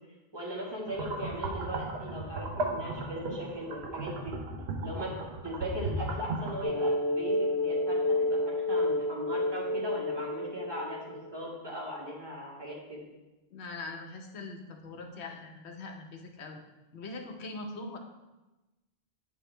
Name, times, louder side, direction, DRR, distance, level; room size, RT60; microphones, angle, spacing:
voice 1, 0.3-4.3 4.8-5.1 5.4-13.0, equal, 25° right, -5 dB, 1.6 m, -39 dB
sound 1, 0.9-6.6, right 2 dB, 70° right, 1.0 m, -36 dB
sound 2, 6.6-11.3, left 1 dB, 15° left, 0.8 m, -30 dB
voice 2, 13.5-16.6 16.9-18.0, left 3 dB, 75° left, 3 dB, 1.1 m, -42 dB
8.5 x 4.6 x 3.3 m, 1.1 s
omnidirectional pair, 1.1 m